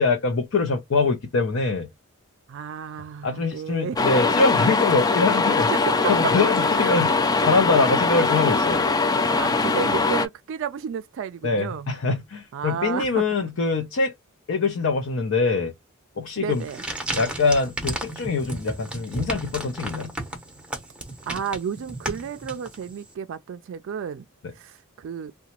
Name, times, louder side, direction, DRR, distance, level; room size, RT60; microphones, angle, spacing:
voice 1, 0.0-1.9 3.2-5.7 6.0-8.9 11.4-14.1 14.5-15.7 16.2-16.6 17.1-20.1, left 4 dB, 65° left, 0.6 m, -23 dB
voice 2, 2.5-4.0 5.7-5.8 6.0-6.3 6.8-6.9 9.3-11.9 12.5-13.2 16.4-16.8 21.3-24.3 24.6-25.3, right 7 dB, 65° right, 0.3 m, -32 dB
sound 1, 4.0-10.3, left 3 dB, 20° left, 0.3 m, -21 dB
sound 2, 16.5-23.1, right 1 dB, 5° right, 0.7 m, -34 dB
2.8 x 2.2 x 2.9 m
head